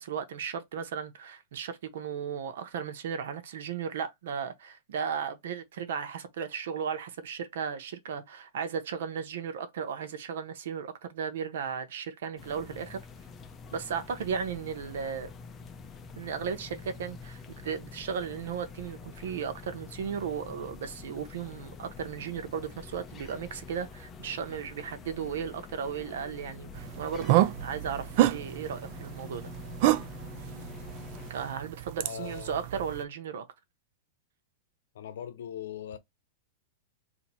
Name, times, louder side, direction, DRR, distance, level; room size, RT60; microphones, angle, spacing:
voice 1, 0.0-13.0 13.7-15.3 16.2-29.5 31.3-33.5, right 7 dB, 75° right, 0.8 m, -35 dB
sound 1, 12.4-31.3, left 5 dB, 20° left, 0.5 m, -46 dB
sound 2, 26.7-33.0, right 15 dB, 50° right, 0.3 m, -29 dB
voice 2, 32.0-32.6 34.9-36.0, left 9 dB, 80° left, 0.7 m, -40 dB
2.7 x 2.6 x 4.2 m
supercardioid pair, 145°, 0 cm